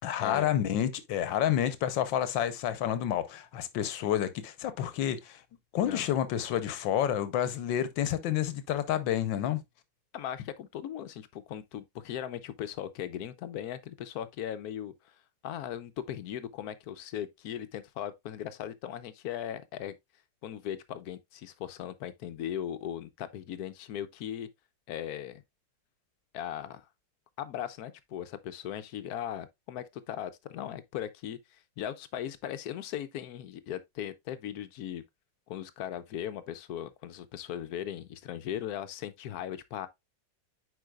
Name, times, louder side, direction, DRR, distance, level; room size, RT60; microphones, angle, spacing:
voice 1, 0.0-5.4 5.7-9.6, left 10 dB, 90° left, 1.5 m, -29 dB
voice 2, 10.1-15.2 15.4-20.0 20.4-24.5 24.9-25.4 26.3-26.9 27.4-35.0 35.5-39.9, left 10 dB, 70° left, 1.0 m, -38 dB
9.4 x 4.5 x 2.3 m
omnidirectional pair, 2.0 m